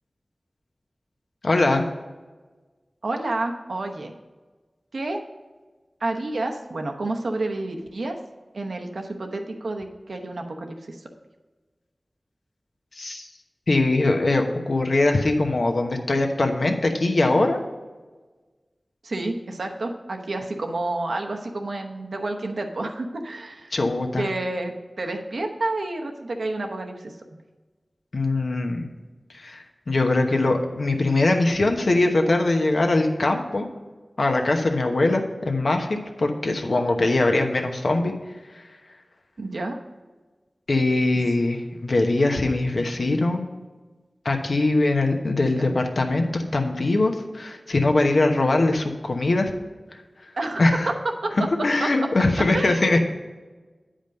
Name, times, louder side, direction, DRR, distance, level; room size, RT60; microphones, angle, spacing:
voice 1, 1.4-1.8 13.0-13.3 13.7-17.6 23.7-24.2 28.1-28.9 29.3-33.7 34.2-38.1 40.7-43.4 44.2-49.5 50.6-50.9 51.6-53.0, left 2 dB, 75° left, 3 dB, 1.0 m, -22 dB
voice 2, 3.0-4.1 4.9-5.2 6.0-8.2 8.5-11.0 19.0-23.7 24.2-27.2 39.4-39.8 45.6-45.7 50.4-50.7 51.2-51.3 51.8-51.9 52.5-53.0, right 2 dB, 85° right, 3 dB, 0.9 m, -29 dB
9.1 x 5.1 x 5.3 m, 1.3 s
wide cardioid pair, 60°, 0 cm